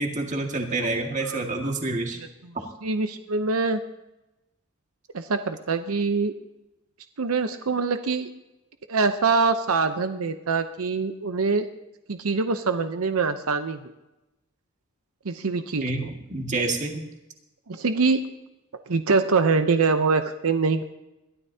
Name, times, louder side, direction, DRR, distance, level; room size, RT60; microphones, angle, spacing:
voice 1, 0.0-2.2 15.8-17.0, right 2 dB, 35° right, 2 dB, 2.0 m, -28 dB
voice 2, 2.8-3.8 5.1-6.3 7.2-8.3 8.9-11.7 12.1-13.8 15.2-15.8 17.7-18.2 18.9-20.8, right 4 dB, 90° right, 8 dB, 0.8 m, -24 dB
21.5 x 13.0 x 2.8 m, 0.97 s
head